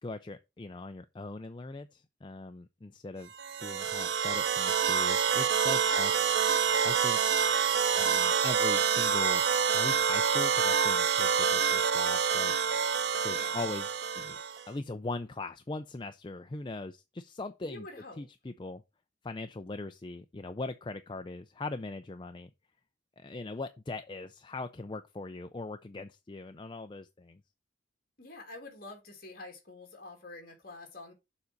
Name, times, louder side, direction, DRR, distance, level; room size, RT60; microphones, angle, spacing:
voice 1, 0.0-3.3 3.6-6.1 6.8-7.2 8.0-9.4 9.7-12.5 13.1-13.9 14.2-14.4 14.7-17.9 18.2-18.8 19.2-22.5 23.2-27.4, left 2 dB, 25° left, 0.4 m, -40 dB
sound 1, 3.4-14.6, right 7 dB, 60° right, 0.5 m, -27 dB
voice 2, 5.7-6.3 13.3-13.6 17.6-18.2 28.2-31.1, left 2 dB, 50° left, 2.5 m, -47 dB
7.1 x 3.9 x 6.6 m
head